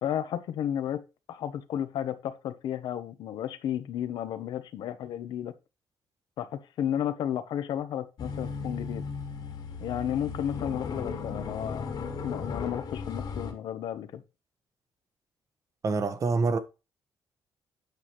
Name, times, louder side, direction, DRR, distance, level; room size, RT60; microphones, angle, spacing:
voice 1, 0.0-1.0 1.3-5.5 6.4-9.0 9.8-11.9 12.2-14.2, left 10 dB, 80° left, 1.0 m, -33 dB
sound 1, 8.2-13.5, left 5 dB, 65° left, 2.4 m, -36 dB
voice 2, 15.8-16.6, right 4 dB, 45° right, 1.2 m, -26 dB
8.9 x 5.8 x 3.1 m
cardioid pair, 95°, 8 cm